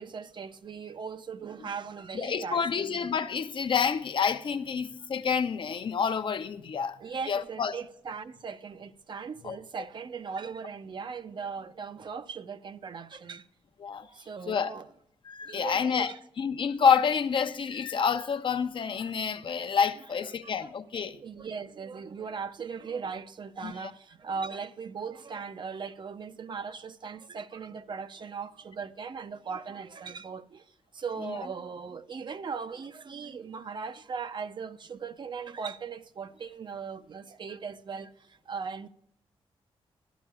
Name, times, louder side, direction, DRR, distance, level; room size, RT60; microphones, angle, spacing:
voice 1, 0.0-2.9 7.0-13.5 14.0-14.9 15.4-16.2 20.2-20.7 21.1-30.6 30.9-38.9, right 5 dB, 50° right, 0.6 m, -39 dB
voice 2, 2.1-7.0 7.3-7.8 9.4-9.6 13.8-14.1 14.5-14.7 15.2-21.2 23.6-23.9 31.2-31.4, left 6 dB, 55° left, 0.6 m, -28 dB
14.5 x 11.5 x 2.4 m
cardioid pair, 95°, 10 cm